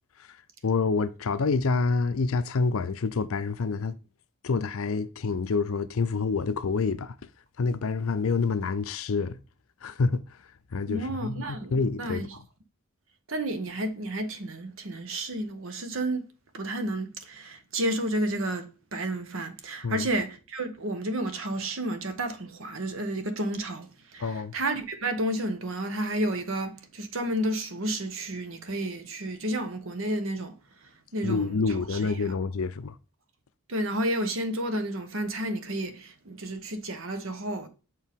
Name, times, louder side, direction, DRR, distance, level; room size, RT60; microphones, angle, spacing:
voice 1, 0.6-4.0 4.4-7.1 7.6-9.4 9.8-10.2 10.7-12.3 19.8-20.1 24.2-24.5 31.2-33.0, left 4 dB, 70° left, 0.5 m, -27 dB
voice 2, 10.9-12.4 13.3-16.3 16.5-30.5 31.1-32.1 33.7-37.7, right 1 dB, 65° right, 1.0 m, -31 dB
6.7 x 4.6 x 3.6 m
head